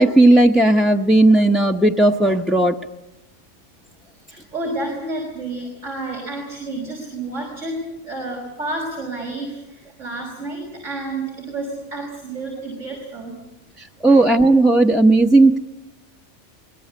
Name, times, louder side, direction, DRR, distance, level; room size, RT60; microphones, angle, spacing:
voice 1, 0.0-2.8 13.8-15.6, right 2 dB, ahead, 1 dB, 0.6 m, -14 dB
voice 2, 4.3-13.3 14.1-14.2, right 2 dB, 90° right, -1 dB, 6.1 m, -30 dB
24.0 x 20.0 x 8.4 m, 0.92 s
omnidirectional pair, 1.2 m